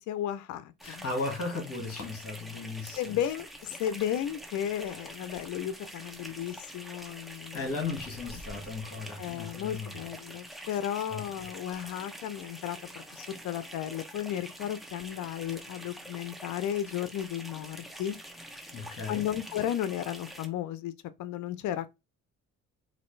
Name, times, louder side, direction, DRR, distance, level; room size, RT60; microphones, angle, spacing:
voice 1, 0.1-1.0 3.0-7.7 9.2-18.2 19.1-20.9 21.2-21.9, left 11 dB, 75° left, 0.5 m, -34 dB
voice 2, 0.8-3.2 7.5-10.0 11.1-11.2 18.7-19.3, left 3 dB, 50° left, 1.6 m, -36 dB
sound 1, 0.8-20.5, right 1 dB, ahead, 0.9 m, -46 dB
4.1 x 2.6 x 3.1 m
cardioid pair, 90°, 30 cm